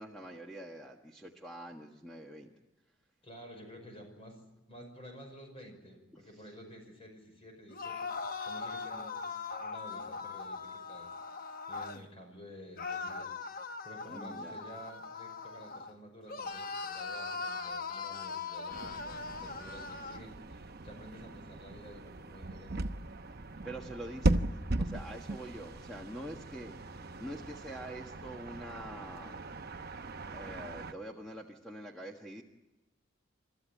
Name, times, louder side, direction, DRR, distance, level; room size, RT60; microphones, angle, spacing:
voice 1, 0.0-2.5 6.1-6.3 14.1-14.6 23.6-24.4 24.8-29.4 30.3-32.4, right 1 dB, ahead, 0 dB, 1.5 m, -45 dB
voice 2, 3.2-4.4 4.7-9.1 9.6-11.1 11.3-22.8, equal, 30° left, 3 dB, 5.7 m, -51 dB
sound 1, 7.7-12.0 12.8-15.9 16.3-20.2, left 4 dB, 45° left, 1.1 m, -40 dB
sound 2, 18.7-30.9, right 2 dB, 50° right, 0.9 m, -38 dB
29.5 x 14.0 x 9.1 m, 1.1 s
head